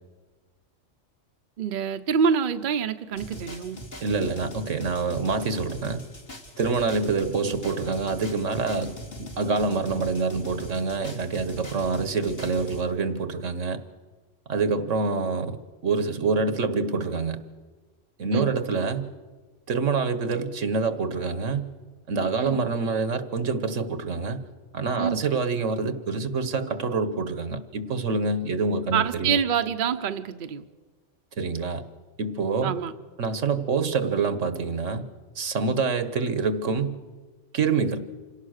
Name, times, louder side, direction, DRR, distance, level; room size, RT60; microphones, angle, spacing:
voice 1, 1.6-3.8 18.3-18.5 22.4-22.6 25.0-25.2 28.9-30.6 32.6-32.9, right 7 dB, 50° right, 8 dB, 0.9 m, -26 dB
sound 1, 3.2-12.8, equal, 50° left, 2.6 m, -41 dB
voice 2, 4.0-6.0 6.6-13.8 14.5-15.6 15.8-17.4 18.2-19.1 19.7-21.7 22.1-24.4 24.7-29.4 31.4-31.8 32.2-32.8 33.2-35.1 35.4-37.0 37.5-38.1, right 4 dB, 85° right, 12 dB, 1.6 m, -26 dB
26.5 x 18.0 x 6.5 m, 1.3 s
omnidirectional pair, 1.3 m